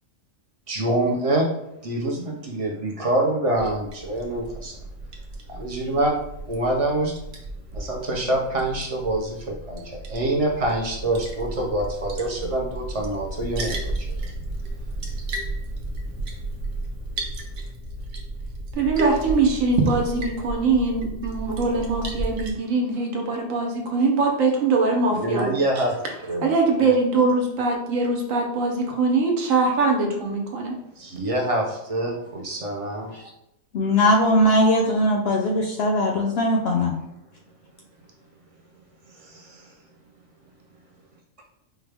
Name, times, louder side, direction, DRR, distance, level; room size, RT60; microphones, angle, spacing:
voice 1, 0.7-1.5 1.8-4.8 5.5-6.2 6.5-7.1 7.7-14.3 25.1-26.5 26.8-26.9 31.0-33.3 39.1-39.7, right 1 dB, 40° right, 0 dB, 0.5 m, -26 dB
Liquid, 3.6-22.5, right 2 dB, 60° right, 0.9 m, -32 dB
voice 2, 18.8-25.5 26.4-30.8, right 3 dB, 75° right, 1 dB, 1.2 m, -22 dB
voice 3, 33.7-37.0, left 1 dB, 65° left, 1 dB, 0.6 m, -20 dB
4.7 x 2.2 x 3.4 m, 0.81 s
omnidirectional pair, 1.4 m